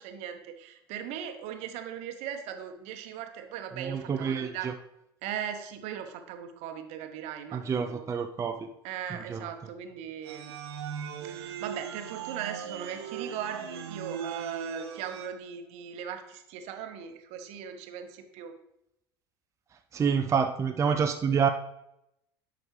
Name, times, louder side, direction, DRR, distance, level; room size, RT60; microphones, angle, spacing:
voice 1, 0.0-4.7 5.2-8.1 8.8-10.5 11.2-18.5, right 9 dB, 55° right, 7 dB, 0.9 m, -39 dB
voice 2, 3.8-4.7 7.5-8.7 9.3-9.4 19.9-21.5, right 6 dB, 20° right, 6 dB, 0.5 m, -27 dB
sound 1, 10.2-15.3, right 7 dB, 75° right, 0.7 m, -38 dB
10.5 x 5.1 x 3.1 m, 0.83 s
hypercardioid pair, 75°, 13 cm